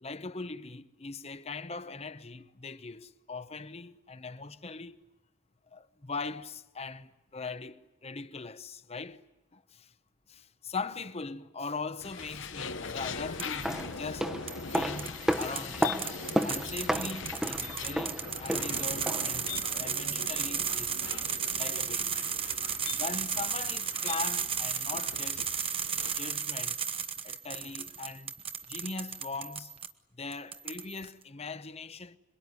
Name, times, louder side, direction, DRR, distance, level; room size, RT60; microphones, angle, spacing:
voice 1, 0.0-5.0 5.7-9.2 9.5-9.9 10.3-14.3 14.7-16.1 16.4-21.0 21.5-22.2 23.0-25.5 26.1-26.8 27.2-28.3 28.7-29.8 30.1-32.2, left 4 dB, 30° left, 0.9 m, -40 dB
sound 1, 12.0-26.4, left 5 dB, 65° left, 1.1 m, -42 dB
sound 2, 13.4-19.4 19.7-19.8, equal, 5° right, 1.1 m, -33 dB
sound 3, 13.4-13.8 14.5-29.9 30.3-31.1, right 7 dB, 30° right, 1.0 m, -34 dB
27.0 x 22.5 x 9.8 m
head